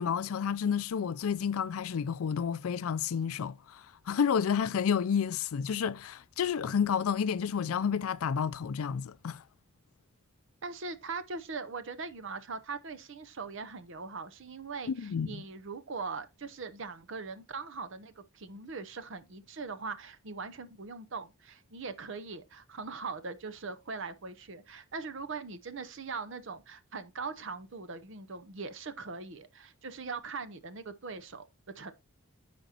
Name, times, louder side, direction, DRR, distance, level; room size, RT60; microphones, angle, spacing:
voice 1, 0.0-9.4 14.9-15.4, left 7 dB, 75° left, 0.4 m, -30 dB
voice 2, 10.6-31.4 31.8-31.9, right 4 dB, 55° right, 0.7 m, -41 dB
14.0 x 5.1 x 2.8 m
head